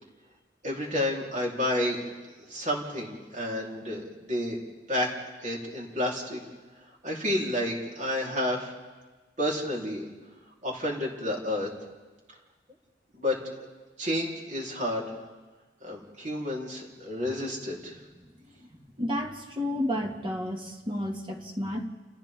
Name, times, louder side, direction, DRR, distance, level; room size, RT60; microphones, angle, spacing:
voice 1, 0.6-2.0 2.5-4.6 4.9-5.1 5.4-6.4 7.0-8.7 9.4-10.1 10.6-11.7 13.2-13.3 14.0-15.1 15.8-17.9, left 1 dB, 45° right, -3 dB, 4.0 m, -30 dB
voice 2, 19.0-21.9, left 1 dB, 30° right, 2 dB, 2.3 m, -31 dB
29.5 x 29.0 x 3.8 m, 1.3 s
head